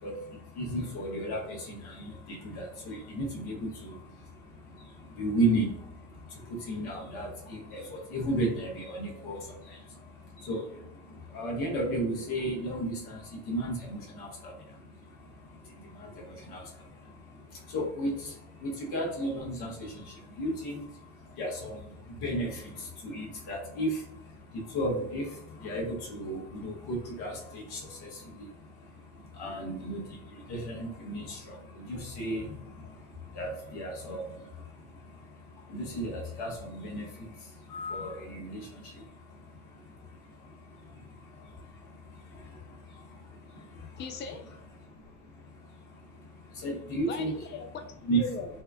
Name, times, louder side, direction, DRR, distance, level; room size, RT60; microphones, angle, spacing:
voice 1, 0.0-44.2 44.7-47.4 48.0-48.3, right 1 dB, 65° left, -1 dB, 1.4 m, -35 dB
voice 2, 44.0-44.6 47.1-48.5, left 5 dB, 25° left, 5 dB, 0.4 m, -39 dB
4.2 x 2.3 x 2.3 m, 0.76 s
hypercardioid pair, 60°, 41 cm